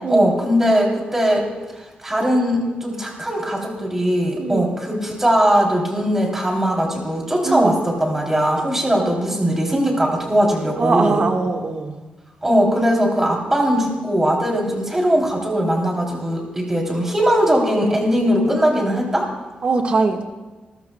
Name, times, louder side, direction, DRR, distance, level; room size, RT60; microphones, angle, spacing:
voice 1, 0.1-1.4 2.0-11.2 12.4-19.3, equal, 15° right, -1 dB, 3.0 m, -19 dB
voice 2, 4.4-4.7 7.4-7.8 10.8-12.0 19.6-20.2, right 3 dB, 40° right, 3 dB, 1.5 m, -21 dB
27.5 x 14.0 x 2.2 m, 1.3 s
wide cardioid pair, 155°, 3 cm